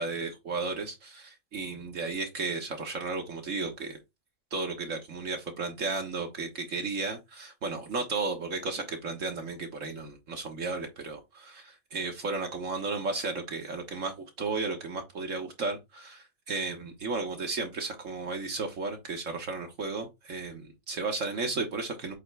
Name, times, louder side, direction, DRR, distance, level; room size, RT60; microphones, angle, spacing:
voice 1, 0.0-4.0 4.5-22.1, right 3 dB, 65° right, 1.6 m, -34 dB
8.0 x 3.5 x 3.4 m
omnidirectional pair, 1.4 m